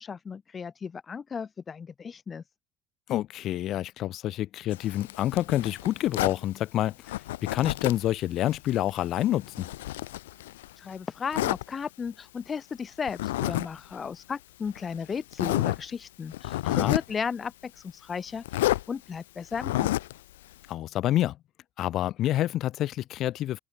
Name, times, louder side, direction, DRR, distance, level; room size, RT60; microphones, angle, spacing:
voice 1, 0.0-2.4 10.8-19.9, left 6 dB, 35° left, 2.8 m, -35 dB
voice 2, 3.1-9.7 16.6-17.0 20.7-21.4 21.8-23.6, left 13 dB, 55° left, 6.9 m, -28 dB
Zipper (clothing), 4.7-6.4 7.1-8.1 8.5-10.7 11.3-11.6 13.1-13.7 13.9-14.1 14.8-14.9 15.3-15.8 16.3-17.1 18.5-18.8 19.5-20.2, left 16 dB, 80° left, 3.6 m, -29 dB
hypercardioid pair, 60°, 0 cm